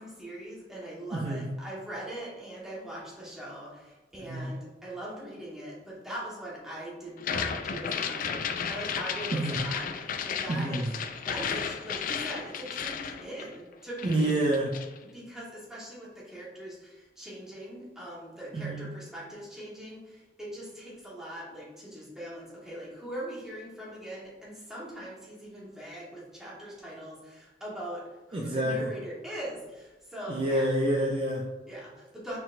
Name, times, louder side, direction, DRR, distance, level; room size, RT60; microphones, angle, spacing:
voice 1, 0.0-10.8 11.2-14.4 15.0-28.0 28.3-30.7 31.7-32.4, right 1 dB, 5° right, -7 dB, 1.3 m, -41 dB
voice 2, 1.1-1.5 4.2-4.5 9.3-9.6 10.5-10.9 14.0-14.8 18.5-18.9 28.3-28.9 30.3-31.5, right 1 dB, 30° right, -1 dB, 0.4 m, -28 dB
sound 1, 7.2-13.7 14.0-15.0, left 7 dB, 50° left, 0.3 m, -34 dB
4.1 x 3.9 x 2.5 m, 1.1 s
head